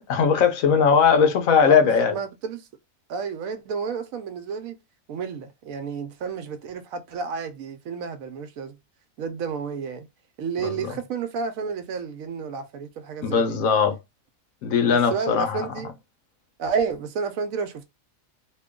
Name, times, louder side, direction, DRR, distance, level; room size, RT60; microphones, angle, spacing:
voice 1, 0.1-2.1 10.6-10.9 13.2-14.0 14.6-15.6, left 6 dB, 80° left, 1.1 m, -19 dB
voice 2, 1.6-2.7 3.1-4.8 5.1-8.8 9.2-10.1 10.4-13.6 14.9-15.9 16.6-17.9, right 5 dB, 80° right, 1.0 m, -31 dB
3.0 x 2.2 x 3.6 m
omnidirectional pair, 1.4 m